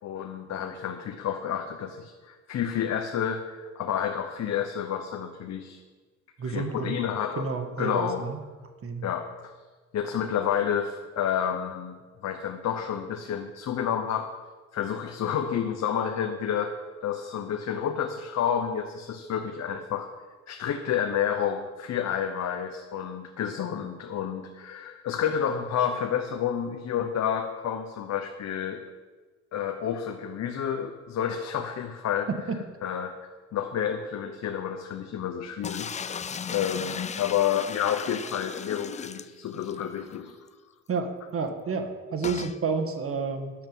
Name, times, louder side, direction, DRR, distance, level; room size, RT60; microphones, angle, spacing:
voice 1, 0.0-5.8 6.4-7.5 7.8-8.3 9.0-9.5 9.9-14.3 14.7-16.7 17.0-20.1 20.5-28.8 29.5-32.3 32.8-33.2 33.5-40.4, left 8 dB, 60° left, 5 dB, 0.9 m, -30 dB
voice 2, 6.4-7.0 7.4-8.4 8.8-9.1 32.5-32.6 40.9-43.5, right 4 dB, 45° right, 6 dB, 1.6 m, -30 dB
sound 1, 35.6-39.8 40.2-40.3 40.5-40.6 42.2-42.6, left 6 dB, 25° left, 0.4 m, -36 dB
10.5 x 6.8 x 7.7 m, 1.4 s
cardioid pair, 90°, 30 cm